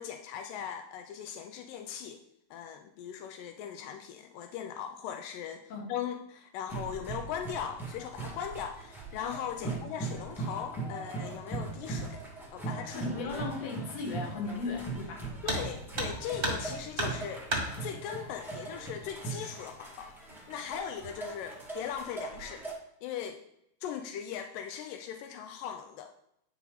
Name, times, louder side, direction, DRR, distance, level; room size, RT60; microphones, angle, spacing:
voice 1, 0.0-2.2 2.5-12.2 12.5-13.4 15.4-17.5 17.8-20.1 20.5-22.6 23.0-23.4 23.8-26.1, left 8 dB, 85° left, 7 dB, 2.2 m, -39 dB
sound 1, 6.7-22.7, right 3 dB, 5° right, 0.3 m, -40 dB
voice 2, 12.9-15.3, left 4 dB, 55° left, 0 dB, 2.5 m, -36 dB
sound 2, 15.4-15.7 16.0-16.7 17.0-17.7 18.9-19.0 19.4-19.5 20.3-20.7 21.0-21.4, right 2 dB, 25° right, 1.2 m, -32 dB
9.7 x 5.9 x 4.0 m, 0.76 s
omnidirectional pair, 3.8 m